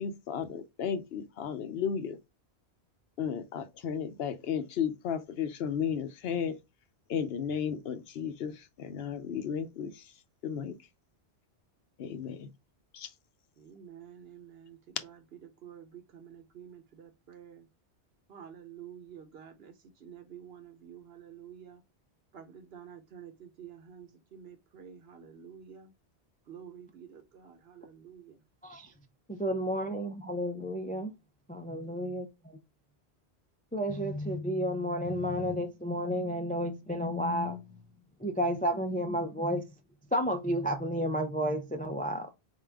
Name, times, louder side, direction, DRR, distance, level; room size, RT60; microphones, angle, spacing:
voice 1, 0.0-2.2 3.2-6.6 7.1-10.1 10.4-10.7 12.0-12.5 12.9-13.1, left 7 dB, 65° left, 0.8 m, -34 dB
voice 2, 13.6-17.7 18.3-21.8 22.3-25.9 26.5-28.4 29.6-29.8 31.8-32.0, right 8 dB, 65° right, 1.0 m, -50 dB
voice 3, 28.6-28.9 29.3-31.1 31.5-32.6 33.7-37.8 38.2-39.6 40.1-42.3, equal, 15° left, 0.3 m, -31 dB
4.0 x 3.7 x 3.4 m
omnidirectional pair, 1.1 m